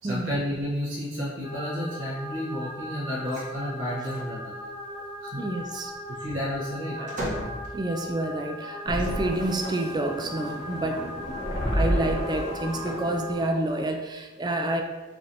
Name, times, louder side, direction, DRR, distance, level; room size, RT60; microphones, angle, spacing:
voice 1, 0.0-4.7 5.2-5.4 6.1-7.0, equal, 90° right, -8 dB, 1.1 m, -31 dB
sound 1, 1.4-13.3, left 1 dB, 45° left, 0.8 m, -39 dB
sound 2, 3.3-3.5 3.9-4.4 5.7-8.2 8.9-9.7, equal, 45° right, 1.0 m, -37 dB
voice 2, 5.4-5.9 7.0-11.3 11.7-14.8, right 2 dB, 20° right, 4 dB, 0.3 m, -29 dB
sound 3, 8.9-13.9, equal, 75° left, 1.1 m, -31 dB
5.0 x 3.0 x 2.6 m, 1.2 s
head